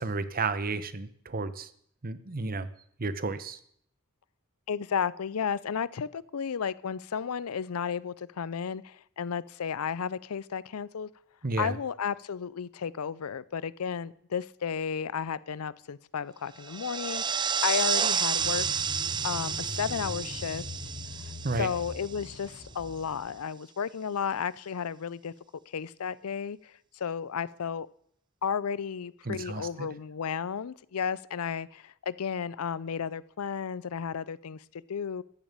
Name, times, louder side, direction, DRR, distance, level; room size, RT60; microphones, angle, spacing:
voice 1, 0.0-1.7 2.0-2.7 3.0-3.6 11.4-11.8 21.4-21.7 29.2-29.9, right 3 dB, 40° right, 0.9 m, -32 dB
voice 2, 4.7-11.1 11.6-18.7 19.2-20.6 21.6-25.3 25.7-27.9 28.4-35.2, left 7 dB, 85° left, 0.5 m, -33 dB
sound 1, 16.6-22.4, right 7 dB, 20° right, 0.5 m, -30 dB
sound 2, 18.4-23.4, left 2 dB, 35° left, 0.8 m, -42 dB
14.0 x 7.2 x 8.7 m
head